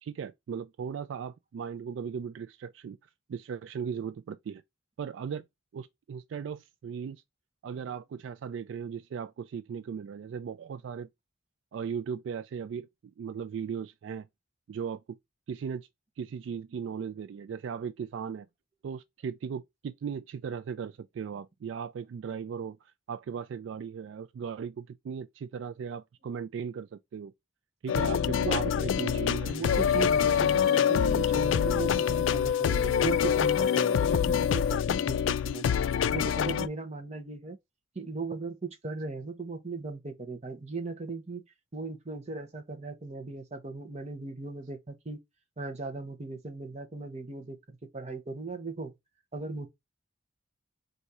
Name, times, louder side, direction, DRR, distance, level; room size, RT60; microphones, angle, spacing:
voice 1, 0.0-3.0 3.3-4.6 5.0-5.4 5.7-7.2 7.6-11.1 11.7-12.9 13.2-14.3 14.7-15.0 15.5-15.9 16.2-18.5 18.8-27.3 27.8-29.8, right 7 dB, 70° right, 0.3 m, -37 dB
sound 1, 27.9-36.7, left 8 dB, 80° left, 0.3 m, -25 dB
voice 2, 28.4-28.9 29.5-35.7 36.1-37.6 37.9-41.4 41.7-45.2 45.6-48.9 49.3-49.7, right 3 dB, 35° right, 0.9 m, -38 dB
4.1 x 2.7 x 4.6 m
head